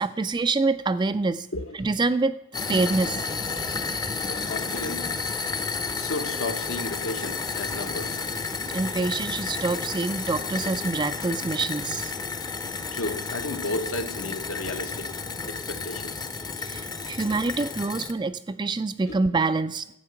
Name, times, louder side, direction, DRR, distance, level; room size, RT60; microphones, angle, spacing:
voice 1, 0.0-1.5 1.8-2.4 2.7-3.3 8.7-12.1 16.6-19.9, right 3 dB, 20° right, 0.3 m, -26 dB
voice 2, 1.5-1.9 3.9-8.2 12.9-15.2 15.4-16.3 19.1-19.2, left 2 dB, 70° left, 1.1 m, -34 dB
sound 1, 2.5-18.1, left 4 dB, 20° left, 0.7 m, -31 dB
11.5 x 8.3 x 5.8 m
head